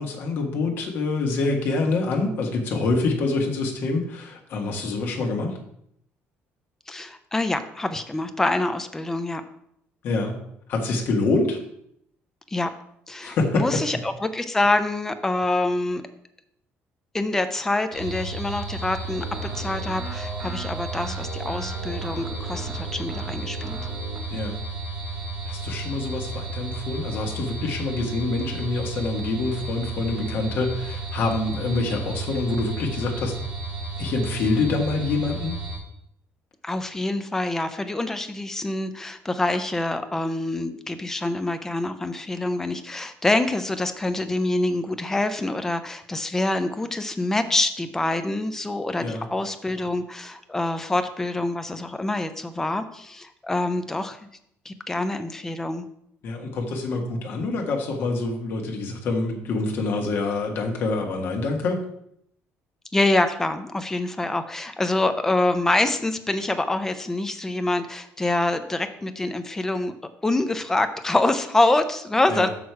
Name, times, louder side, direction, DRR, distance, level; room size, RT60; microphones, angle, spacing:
voice 1, 0.0-5.6 10.0-10.4 10.7-11.6 13.2-13.8 24.3-24.6 25.5-33.3 34.0-35.6 49.0-49.2 56.2-61.8 72.3-72.5, left 3 dB, 50° left, 2 dB, 1.5 m, -26 dB
voice 2, 6.9-9.4 12.5-12.7 13.1-16.0 17.1-23.8 36.6-54.2 54.7-55.9 62.9-69.9 70.2-72.5, left 2 dB, 10° left, 9 dB, 0.5 m, -25 dB
sound 1, 17.9-35.8, right 3 dB, 15° right, 3.1 m, -33 dB
sound 2, 19.1-24.3, right 3 dB, 35° right, 0.9 m, -39 dB
6.3 x 6.2 x 4.7 m, 0.73 s
cardioid pair, 180°, 5 cm